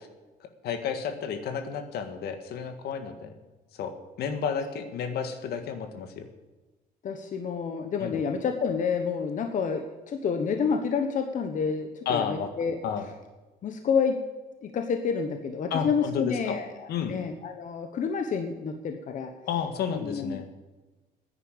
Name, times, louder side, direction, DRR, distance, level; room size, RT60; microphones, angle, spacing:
voice 1, 0.6-3.3 3.8-3.9 4.2-6.3 8.0-8.2 12.1-12.5 12.8-13.1 15.7-16.6 16.9-17.2 19.5-20.5, left 7 dB, 70° left, 8 dB, 1.8 m, -31 dB
voice 2, 7.0-12.8 13.6-14.2 14.6-19.3 19.9-20.6, left 6 dB, 50° left, 6 dB, 1.2 m, -29 dB
10.0 x 9.7 x 8.9 m, 1.2 s
cardioid pair, 110°, 17 cm